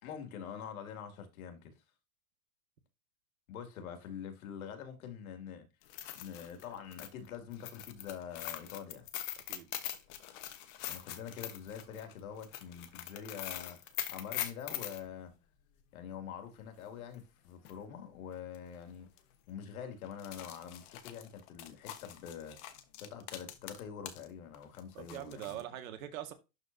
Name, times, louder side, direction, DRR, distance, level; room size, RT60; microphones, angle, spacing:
voice 1, 0.0-1.7 3.5-5.6 6.1-9.1 10.9-15.3 15.9-19.1 19.5-22.6 23.0-25.6, left 8 dB, 75° left, 2.6 m, -45 dB
sound 1, 5.8-15.0 17.2-17.3 17.6-17.7 18.5-18.8 19.1-19.2 20.1-24.3 24.5-25.6, left 12 dB, 40° left, 1.2 m, -43 dB
voice 2, 25.0-26.3, right 12 dB, 70° right, 1.9 m, -43 dB
12.0 x 4.5 x 2.7 m
supercardioid pair, 155°, 42 cm